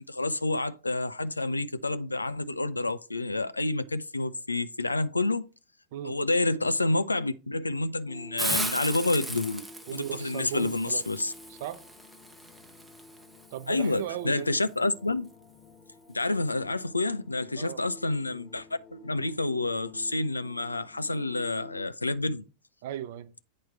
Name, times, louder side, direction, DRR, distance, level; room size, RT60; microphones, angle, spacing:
voice 1, 0.0-5.5 6.0-9.6 9.9-11.3 13.7-15.3 16.1-22.4, left 2 dB, 80° left, 0.5 m, -29 dB
sound 1, 8.1-21.9, left 3 dB, 25° left, 2.2 m, -52 dB
Hiss, 8.4-14.0, right 1 dB, 5° right, 0.9 m, -37 dB
voice 2, 9.9-11.9 13.5-14.5 17.6-17.8 22.8-23.3, right 11 dB, 50° right, 0.7 m, -37 dB
8.6 x 4.6 x 4.6 m
figure-of-eight pair, 90°, 0 cm